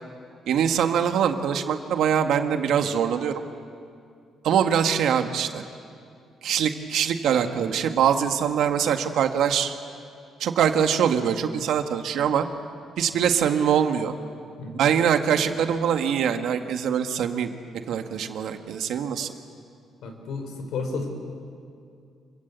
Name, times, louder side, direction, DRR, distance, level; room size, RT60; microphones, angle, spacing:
voice 1, 0.5-3.4 4.4-5.6 6.4-9.7 10.4-12.4 13.0-14.1 14.7-17.5 17.9-19.3, right 8 dB, 70° right, 6 dB, 1.7 m, -23 dB
voice 2, 20.0-21.1, left 4 dB, 75° left, 5 dB, 4.5 m, -32 dB
27.0 x 23.5 x 8.3 m, 2.4 s
cardioid pair, 135°, 0 cm